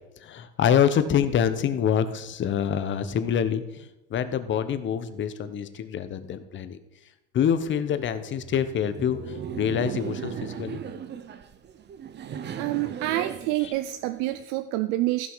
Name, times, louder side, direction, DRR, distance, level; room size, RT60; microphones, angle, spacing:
voice 1, 0.2-6.8 7.3-10.8, left 8 dB, 30° left, 11 dB, 1.0 m, -26 dB
Laughter, 8.2-14.4, right 8 dB, 30° right, 0.9 m, -37 dB
voice 2, 12.5-15.3, right 16 dB, 60° right, 11 dB, 0.7 m, -27 dB
15.5 x 5.7 x 5.7 m, 0.92 s
supercardioid pair, 120°, 36 cm